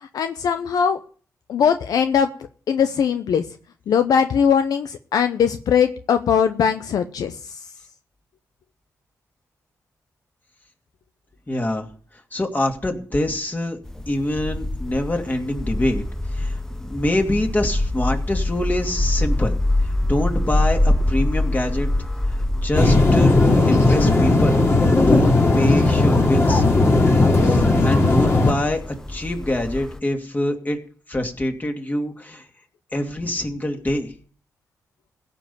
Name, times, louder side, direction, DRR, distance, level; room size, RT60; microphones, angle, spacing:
voice 1, 0.0-1.0 1.5-2.3 2.7-3.4 3.9-7.6, left 7 dB, 80° left, 9 dB, 0.7 m, -20 dB
voice 2, 11.5-11.9 12.3-13.8 14.1-16.0 16.3-19.5 19.8-21.9 22.3-26.6 27.5-28.8 29.1-30.8 31.1-32.5 32.9-34.1, left 1 dB, 25° left, 3 dB, 2.6 m, -25 dB
sound 1, 13.9-30.0, left 1 dB, 10° left, 0.9 m, -25 dB
sound 2, 22.7-28.5, left 2 dB, 40° left, 3.2 m, -16 dB
16.0 x 5.4 x 8.7 m, 0.44 s
cardioid pair, 60°, 6 cm